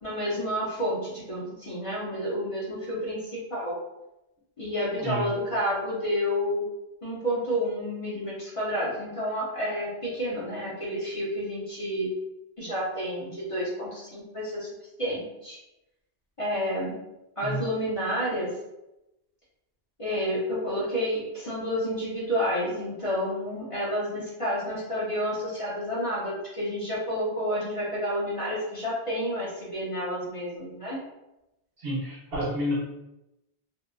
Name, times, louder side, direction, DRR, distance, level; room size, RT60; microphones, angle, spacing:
voice 1, 0.0-3.7 4.6-6.7 7.0-12.1 12.6-14.7 15.0-15.6 16.4-17.0 17.4-18.5 20.0-31.0, equal, 35° left, -8 dB, 0.6 m, -30 dB
voice 2, 31.8-32.7, equal, 65° right, -7 dB, 1.2 m, -30 dB
2.7 x 2.4 x 2.3 m, 0.93 s
omnidirectional pair, 1.1 m